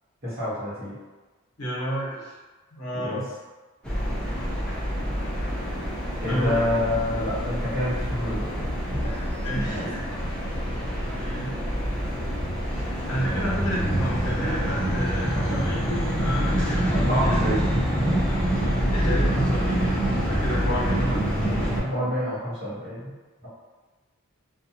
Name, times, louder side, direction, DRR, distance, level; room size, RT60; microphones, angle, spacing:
voice 1, 0.2-0.9 2.9-3.2 6.2-9.3 9.6-9.9 16.9-17.7 21.1-21.2 21.5-23.1 23.4-23.5, equal, 45° right, -9 dB, 1.1 m, -28 dB
voice 2, 1.6-2.3 2.8-3.2 5.5-5.7 6.3-6.6 9.4-10.0 11.1-11.5 12.7-15.8 16.2-17.3 18.9-21.2, equal, 70° left, -6 dB, 0.8 m, -30 dB
sound 1, 3.8-21.8, equal, 5° left, 0.5 m, -26 dB
2.3 x 2.3 x 2.8 m, 1.3 s
head